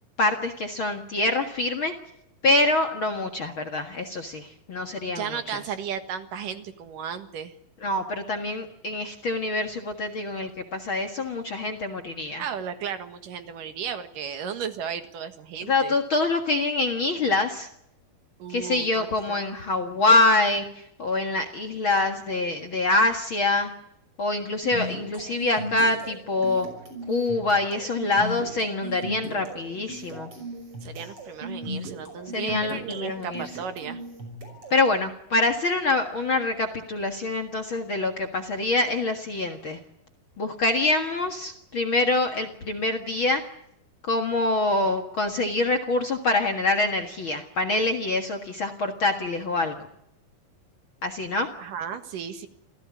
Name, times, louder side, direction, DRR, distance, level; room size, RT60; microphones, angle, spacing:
voice 1, 0.2-1.9 2.4-5.6 7.8-12.4 15.7-17.7 18.5-23.7 24.2-26.7 27.1-30.3 32.3-33.5 34.7-39.8 40.4-43.4 44.0-49.9 51.0-51.5, left 2 dB, 45° left, 5 dB, 1.9 m, -25 dB
voice 2, 5.1-7.5 12.4-16.0 18.4-19.1 30.8-34.0 51.6-52.5, right 7 dB, 65° right, 9 dB, 3.1 m, -34 dB
sound 1, 24.6-34.9, right 1 dB, 35° right, 6.6 m, -37 dB
27.5 x 16.5 x 9.6 m, 0.75 s
omnidirectional pair, 4.3 m